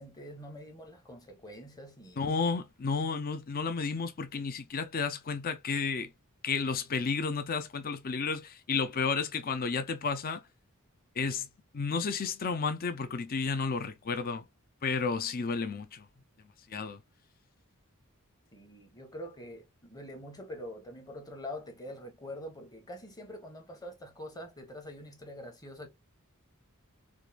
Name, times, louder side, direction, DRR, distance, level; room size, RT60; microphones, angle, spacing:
voice 1, 0.0-2.2 18.5-25.9, left 1 dB, 20° left, 1.0 m, -45 dB
voice 2, 2.2-6.1 6.4-10.4 11.2-11.5 11.7-14.4 14.8-16.1 16.7-17.0, left 5 dB, 45° left, 0.5 m, -32 dB
4.7 x 2.5 x 2.3 m
head